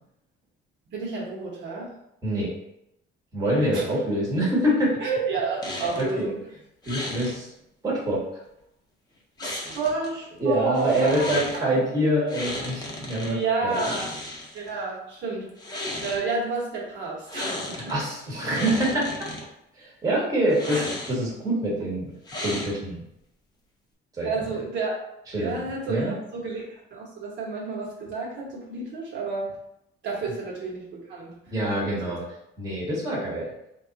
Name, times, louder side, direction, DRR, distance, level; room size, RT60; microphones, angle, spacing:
voice 1, 0.9-1.9 3.5-3.9 5.0-6.4 9.4-11.2 13.2-14.1 14.5-17.9 20.7-20.8 24.2-25.0 25.4-29.5 30.0-31.4 32.0-32.2, right 4 dB, 60° right, -4 dB, 1.2 m, -31 dB
voice 2, 3.3-5.0 6.0-6.3 6.8-7.5 7.8-8.2 10.4-13.8 17.7-19.3 19.8-22.1 22.4-23.0 24.2-24.3 25.3-26.1 31.5-32.2 32.6-33.5, right 1 dB, 15° right, -6 dB, 1.1 m, -25 dB
sound 1, 5.6-6.1 6.8-7.4 9.4-10.1 10.7-11.6 12.3-13.3 13.7-14.7 15.5-16.2 17.3-17.9 18.3-19.4 20.5-21.3 22.3-23.0, left 1 dB, 20° left, 0.7 m, -34 dB
3.4 x 2.4 x 3.9 m, 0.81 s
cardioid pair, 155°, 21 cm